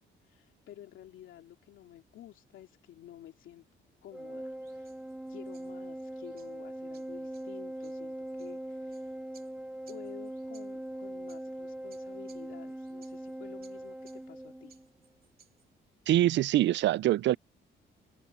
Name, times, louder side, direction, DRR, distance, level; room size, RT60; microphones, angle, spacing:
voice 1, 0.2-3.7 4.0-4.9 5.3-9.3 9.9-14.8, left 12 dB, 80° left, 2.6 m, -52 dB
Organ, 4.1-14.9, right 1 dB, 5° right, 0.5 m, -41 dB
sound 1, 4.6-15.7, right 6 dB, 50° right, 3.4 m, -65 dB
voice 2, 16.1-17.4, right 14 dB, 65° right, 0.4 m, -24 dB
cardioid pair, 90°, 20 cm